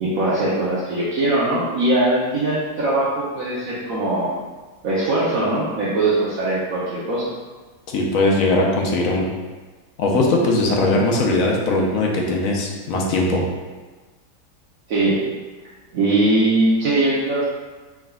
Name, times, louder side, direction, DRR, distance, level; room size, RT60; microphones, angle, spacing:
voice 1, 0.0-4.4 4.8-7.2 14.9-15.2 15.9-17.4, right 2 dB, 65° right, -8 dB, 1.1 m, -21 dB
voice 2, 7.9-9.3 10.0-13.4, left 2 dB, 65° left, -1 dB, 0.9 m, -19 dB
4.7 x 3.4 x 2.3 m, 1.3 s
omnidirectional pair, 1.7 m